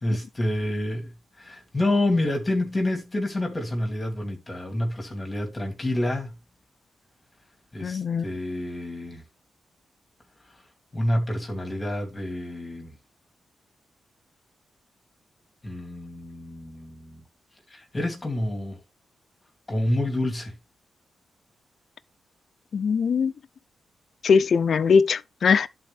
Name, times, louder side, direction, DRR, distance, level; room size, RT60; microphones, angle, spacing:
voice 1, 0.0-6.3 7.7-9.2 10.9-13.0 15.6-17.2 17.7-18.8 19.7-20.5, left 1 dB, 25° left, 2.3 m, -28 dB
voice 2, 7.8-8.2 22.7-23.3 24.2-25.7, left 6 dB, 65° left, 0.5 m, -21 dB
11.5 x 4.1 x 3.4 m
cardioid pair, 85°, 0 cm